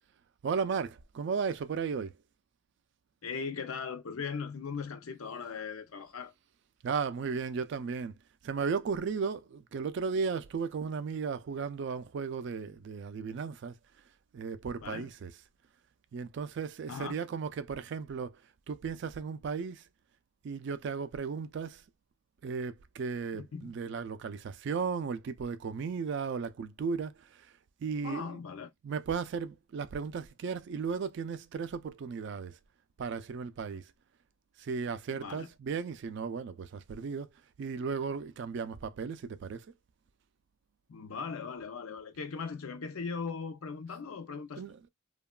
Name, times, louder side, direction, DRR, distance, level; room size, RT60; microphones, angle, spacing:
voice 1, 0.4-2.2 6.8-13.8 14.3-15.4 16.1-18.4 18.7-19.9 20.4-21.8 22.4-28.4 28.8-32.6 33.0-33.9 34.6-37.3 37.6-39.7 44.6-44.9, right 5 dB, 55° right, 0.3 m, -35 dB
voice 2, 3.2-6.3 14.8-15.1 16.9-17.2 23.5-23.7 28.0-28.7 35.2-35.5 40.9-44.6, left 5 dB, 80° left, 0.5 m, -39 dB
2.9 x 2.2 x 2.2 m
head